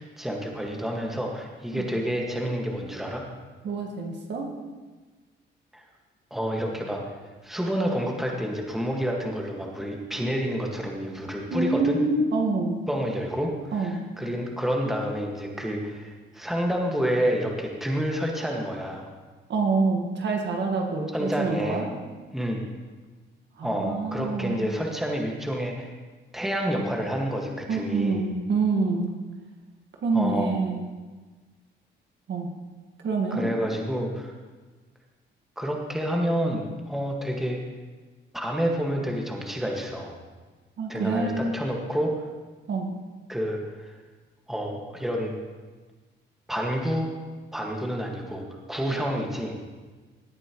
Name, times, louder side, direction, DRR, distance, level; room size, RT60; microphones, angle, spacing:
voice 1, 0.0-3.2 5.7-5.8 6.3-7.0 7.4-12.0 12.9-19.1 21.1-21.8 22.3-22.6 23.6-25.9 26.3-28.2 30.1-30.6 33.3-34.3 35.6-37.6 38.3-40.2 40.9-42.2 43.3-43.9 44.5-45.3 46.5-47.1 47.5-49.5, equal, ahead, 0 dB, 1.8 m, -29 dB
voice 2, 3.6-4.5 11.5-12.8 13.7-14.0 19.5-21.9 23.6-24.6 27.7-29.1 30.0-30.8 32.3-32.5 33.0-33.5 40.8-41.6 42.7-42.9, right 3 dB, 65° right, 1 dB, 1.7 m, -26 dB
17.5 x 8.8 x 3.1 m, 1.3 s
cardioid pair, 90°, 20 cm